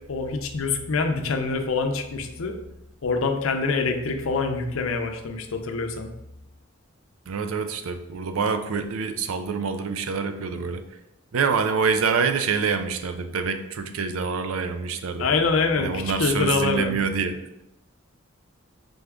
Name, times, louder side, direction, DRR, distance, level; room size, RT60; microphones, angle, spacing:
voice 1, 0.1-2.6 3.0-6.1 15.2-16.9, left 4 dB, 75° left, 5 dB, 0.5 m, -25 dB
voice 2, 7.3-11.0 11.3-15.3 15.7-17.6, right 5 dB, 85° right, 9 dB, 0.4 m, -26 dB
3.8 x 3.5 x 3.5 m, 0.91 s
head